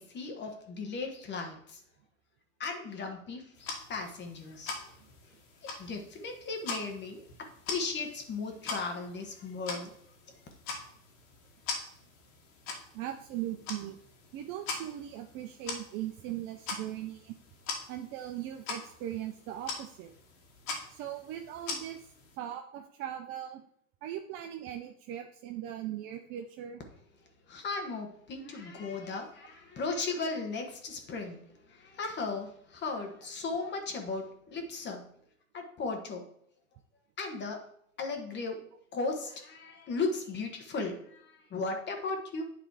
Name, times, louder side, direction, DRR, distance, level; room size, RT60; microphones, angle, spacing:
voice 1, 0.0-1.8 2.6-4.8 5.8-7.2 7.7-9.9 27.5-31.4 31.7-35.0 35.5-36.2 37.2-37.6 38.0-38.6 38.9-42.4, left 3 dB, 25° left, 3 dB, 1.3 m, -36 dB
sound 1, 3.5-22.4, left 4 dB, 65° left, 1.8 m, -43 dB
voice 2, 12.9-14.0 14.3-17.4 17.9-20.1 20.9-22.0 22.4-23.6 24.0-26.8, right 11 dB, 30° right, 5 dB, 0.4 m, -39 dB
8.9 x 3.3 x 4.7 m, 0.68 s
hypercardioid pair, 115°, 42 cm